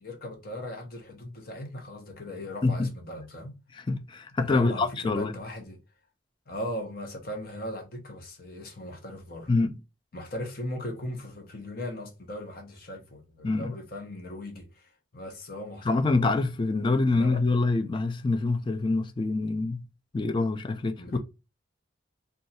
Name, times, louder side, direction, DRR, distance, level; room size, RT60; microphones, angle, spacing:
voice 1, 0.0-3.5 4.4-5.8 6.5-9.5 10.1-16.2 17.1-17.4 21.0-21.2, left 1 dB, 50° left, 0.9 m, -38 dB
voice 2, 3.7-5.3 9.5-9.7 13.4-13.8 15.8-19.8 20.1-21.2, left 3 dB, 25° left, 0.3 m, -26 dB
2.6 x 2.3 x 4.0 m
head